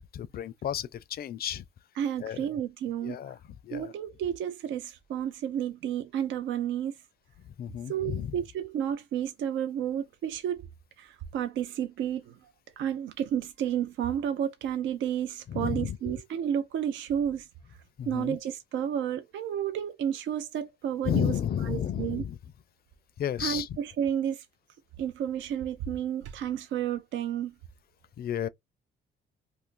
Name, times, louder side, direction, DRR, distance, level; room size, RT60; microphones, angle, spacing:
voice 1, 0.0-1.6 2.2-2.5 3.0-3.9 7.6-8.4 15.5-16.0 18.0-18.4 21.0-22.4 23.2-23.7 28.2-28.5, left 9 dB, 50° left, 0.4 m, -32 dB
voice 2, 2.0-3.2 3.7-7.0 7.9-10.7 11.0-12.3 12.8-17.5 18.1-21.3 21.7-22.2 23.4-24.5 25.0-27.5, right 9 dB, 70° right, 0.5 m, -31 dB
2.5 x 2.5 x 3.7 m
cardioid pair, 90°, 20 cm